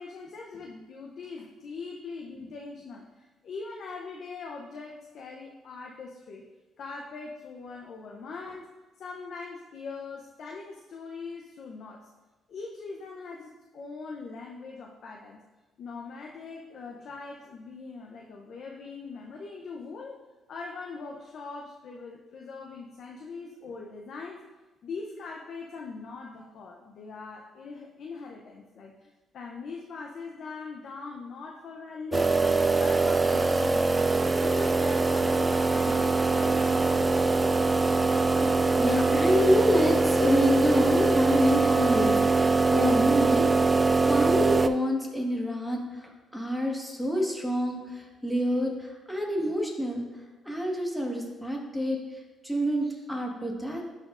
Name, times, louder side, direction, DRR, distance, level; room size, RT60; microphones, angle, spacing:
voice 1, 0.0-6.5 6.8-8.7 9.0-12.1 12.5-15.4 15.8-20.2 20.5-24.4 24.8-32.4 32.8-34.1 34.4-37.7, left 4 dB, 65° left, 0 dB, 0.6 m, -41 dB
sound 1, 32.1-44.7, right 3 dB, 20° right, 0.3 m, -23 dB
voice 2, 38.3-50.0 50.4-53.9, equal, ahead, -1 dB, 1.5 m, -28 dB
12.0 x 4.4 x 2.5 m, 1.2 s
cardioid pair, 80°, 0 cm